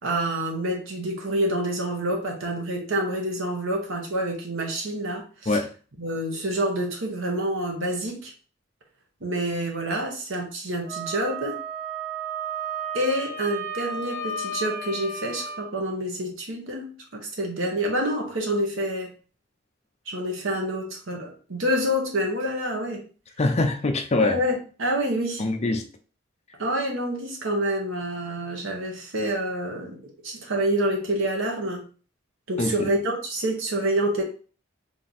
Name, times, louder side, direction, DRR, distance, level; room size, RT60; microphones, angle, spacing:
voice 1, 0.0-5.6 6.0-8.3 9.2-11.6 12.9-19.1 20.1-23.0 24.2-25.4 26.6-31.9 32.5-34.2, right 1 dB, 75° right, 0 dB, 1.3 m, -27 dB
Wind instrument woodwind instrument, 10.9-15.6, right 4 dB, 50° right, 1.0 m, -33 dB
voice 2, 23.4-24.4 25.4-25.9 32.6-32.9, left 2 dB, 35° left, 6 dB, 0.5 m, -24 dB
3.2 x 3.0 x 4.1 m, 0.38 s
head